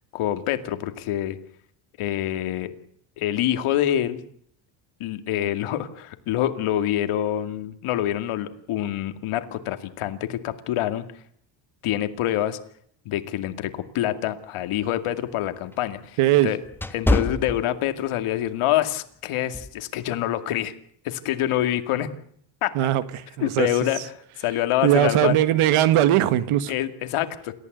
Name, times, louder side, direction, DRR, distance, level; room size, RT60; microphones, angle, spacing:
voice 1, 0.1-1.4 2.0-2.7 3.2-4.2 5.0-11.0 11.8-12.6 13.1-16.2 16.4-16.6 16.9-20.7 21.0-22.1 22.6-22.7 23.4-24.0 24.4-25.3 26.7-27.5, left 12 dB, 85° left, 8 dB, 2.4 m, -26 dB
sound 1, 14.5-18.3 18.7-18.9 19.5-19.8, left 1 dB, 5° left, 1.3 m, -27 dB
voice 2, 16.2-16.5 22.7-23.7 24.8-26.7, right 13 dB, 85° right, 13 dB, 1.8 m, -20 dB
28.5 x 14.5 x 8.1 m, 0.64 s
cardioid pair, 135°, 49 cm